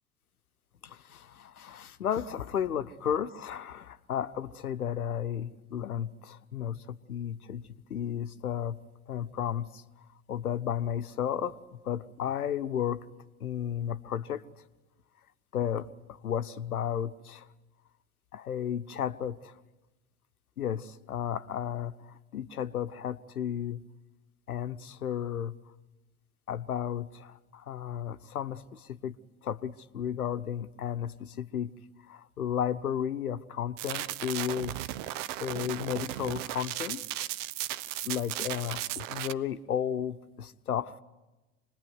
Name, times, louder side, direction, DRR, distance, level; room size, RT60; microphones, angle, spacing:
voice 1, 0.8-8.8 9.1-9.8 10.3-11.6 11.8-13.0 13.4-14.4 15.5-17.5 18.3-19.6 20.6-23.8 24.5-25.5 26.5-29.1 29.4-31.7 32.0-34.8 35.4-37.3 38.0-41.0, left 9 dB, 80° left, 12 dB, 1.0 m, -33 dB
sound 1, 33.8-39.3, right 14 dB, 55° right, 0.8 m, -36 dB
26.0 x 20.5 x 9.6 m, 1.1 s
figure-of-eight pair, 75°, 43 cm